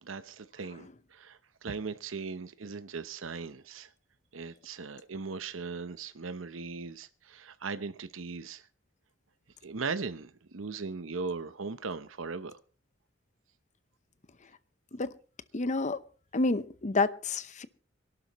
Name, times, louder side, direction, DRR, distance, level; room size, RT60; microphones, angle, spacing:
voice 1, 0.0-3.9 4.3-8.7 9.6-12.6, right 4 dB, 80° right, 12 dB, 0.8 m, -38 dB
voice 2, 15.5-16.0 16.3-17.7, left 3 dB, 40° left, 14 dB, 0.8 m, -29 dB
25.5 x 12.0 x 3.1 m, 0.38 s
head